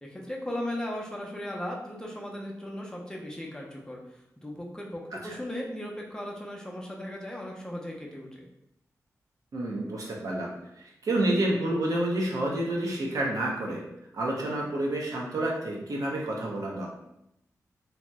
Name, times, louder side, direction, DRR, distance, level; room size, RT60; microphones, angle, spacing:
voice 1, 0.0-8.5, left 1 dB, 10° left, -2 dB, 0.5 m, -37 dB
voice 2, 9.5-13.8 14.1-16.9, right 1 dB, 80° right, -2 dB, 0.7 m, -29 dB
2.8 x 2.1 x 3.4 m, 0.81 s
wide cardioid pair, 130°, 6 cm